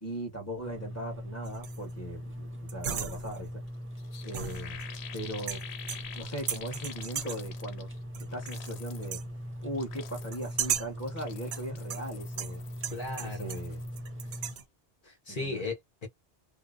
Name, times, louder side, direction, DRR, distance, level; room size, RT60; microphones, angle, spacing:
voice 1, 0.0-3.6 4.2-4.8 5.1-5.6 6.1-7.9 8.3-9.2 9.6-12.6 13.2-13.8 15.3-15.6, right 1 dB, 15° left, 1.1 m, -39 dB
sound 1, 0.6-14.5, equal, 20° right, 0.3 m, -41 dB
sound 2, 1.4-1.9 2.7-3.6 4.3-5.1 5.5-6.2 6.5-7.5 8.1-8.7 9.0-9.3 10.3-11.0 11.5-13.7 14.0-14.6, right 8 dB, 55° right, 0.6 m, -36 dB
sound 3, 3.7-3.8 4.0-8.0 8.3-9.1 9.6-10.6 11.0-14.0 14.2-14.6, left 8 dB, 75° left, 0.9 m, -47 dB
voice 2, 12.9-13.6 15.0-16.1, left 3 dB, 50° left, 1.1 m, -36 dB
2.7 x 2.0 x 2.5 m
omnidirectional pair, 1.1 m